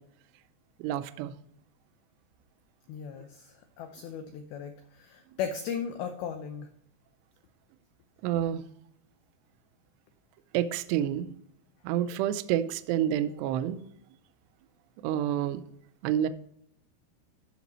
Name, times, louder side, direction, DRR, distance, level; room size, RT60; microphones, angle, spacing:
voice 1, 0.8-1.3 8.2-8.6 10.5-11.3 11.8-13.8 15.0-15.6 16.0-16.3, right 11 dB, 80° right, 12 dB, 2.5 m, -28 dB
voice 2, 2.9-6.7, left 7 dB, 90° left, 6 dB, 2.1 m, -37 dB
13.0 x 6.1 x 3.0 m, 0.72 s
omnidirectional pair, 5.3 m